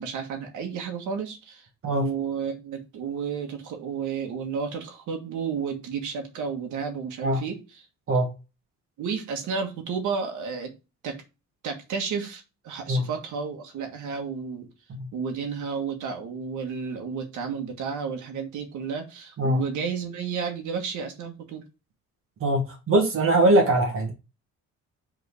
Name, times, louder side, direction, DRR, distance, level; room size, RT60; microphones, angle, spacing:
voice 1, 0.0-7.9 9.0-10.7 11.0-11.2 11.6-14.7 15.1-21.6, right 6 dB, 85° right, 1.6 m, -32 dB
voice 2, 22.4-24.1, right 1 dB, 45° right, 1.7 m, -21 dB
5.2 x 3.8 x 4.8 m
cardioid pair, 160°, 29 cm